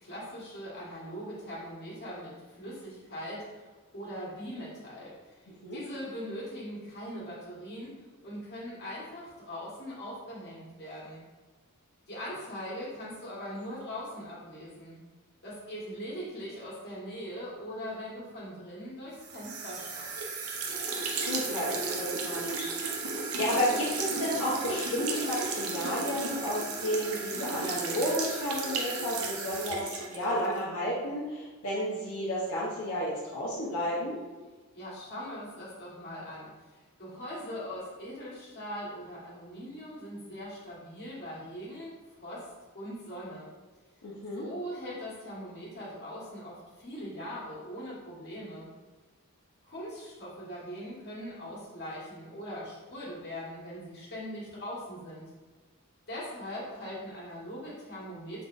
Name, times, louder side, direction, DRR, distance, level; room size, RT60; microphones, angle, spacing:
voice 1, 0.0-5.3 5.7-7.9 8.2-11.2 12.1-14.9 15.4-20.2 34.7-42.5 42.7-43.5 44.3-48.7 49.6-55.3 56.1-58.5, equal, 50° left, -7 dB, 1.5 m, -41 dB
sound 1, 19.2-30.6, right 4 dB, 75° right, 0.6 m, -34 dB
voice 2, 21.0-22.7 22.9-34.1 44.0-44.4, equal, 80° left, -7 dB, 0.9 m, -32 dB
3.9 x 3.9 x 2.5 m, 1.3 s
head